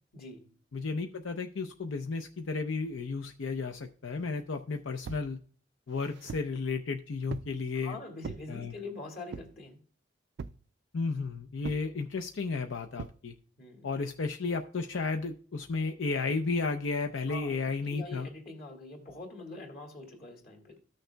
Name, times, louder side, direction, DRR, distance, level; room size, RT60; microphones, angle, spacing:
voice 1, 0.1-0.5 7.8-9.8 13.6-13.9 17.3-20.8, left 3 dB, 50° left, 3 dB, 1.9 m, -44 dB
voice 2, 0.7-5.4 5.9-8.0 8.5-8.7 10.9-13.3 13.8-18.3, left 4 dB, 90° left, 5 dB, 0.6 m, -33 dB
sound 1, 5.0-5.3 5.9-6.6 7.3-7.6 8.2-8.5 9.3-9.6 10.4-10.7 11.6-11.9 13.0-13.2, right 5 dB, 60° right, 0.3 m, -41 dB
14.5 x 6.4 x 2.2 m, 0.43 s
head